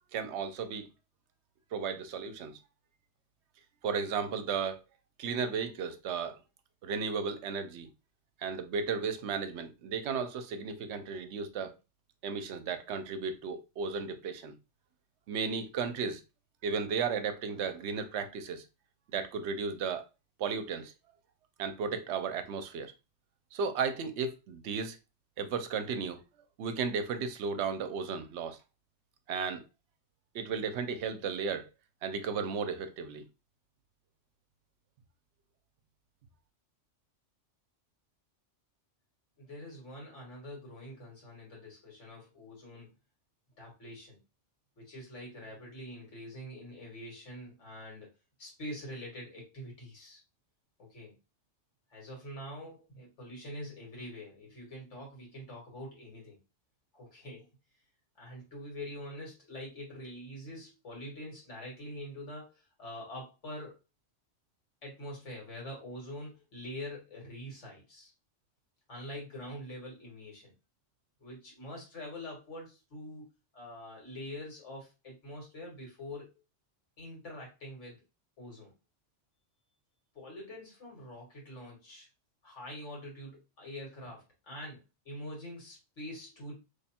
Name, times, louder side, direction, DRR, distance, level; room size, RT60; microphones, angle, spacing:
voice 1, 0.1-0.9 1.7-2.6 3.8-4.8 5.2-6.4 6.8-7.9 8.4-11.8 12.2-14.5 15.3-16.2 16.6-18.6 19.1-20.0 20.4-20.9 21.6-22.9 23.5-25.0 25.4-26.2 26.6-28.6 29.3-29.6 30.3-31.7 32.0-33.2, right 5 dB, 70° right, 0.9 m, -34 dB
voice 2, 39.4-42.9 43.6-44.2 44.8-48.1 48.4-50.2 50.8-51.1 51.9-56.4 56.9-57.5 58.2-63.8 64.8-68.1 68.9-70.5 71.2-76.3 77.0-78.0 78.4-78.7 80.1-82.1 82.4-86.5, left 1 dB, 75° left, 2.0 m, -45 dB
3.3 x 2.2 x 4.2 m
omnidirectional pair, 1.2 m